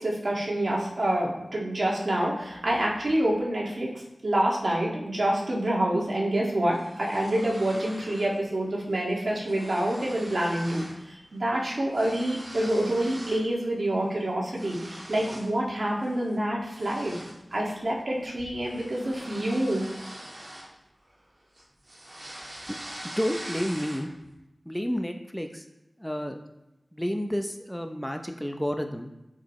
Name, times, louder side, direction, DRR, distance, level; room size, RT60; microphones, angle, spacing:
voice 1, 0.0-17.1 17.5-19.9, right 1 dB, 65° right, -3 dB, 2.0 m, -27 dB
sound 1, 6.7-8.4 8.7-9.0 9.2-11.0 11.3-13.5 13.9-15.6 16.0-16.2 16.7-21.2 21.5-24.3, right 1 dB, 45° right, 1.9 m, -43 dB
voice 2, 23.0-24.1 24.6-25.7 26.0-26.4 26.9-29.1, equal, 5° left, 5 dB, 0.7 m, -30 dB
12.5 x 5.0 x 3.2 m, 0.93 s
wide cardioid pair, 50°, 0 cm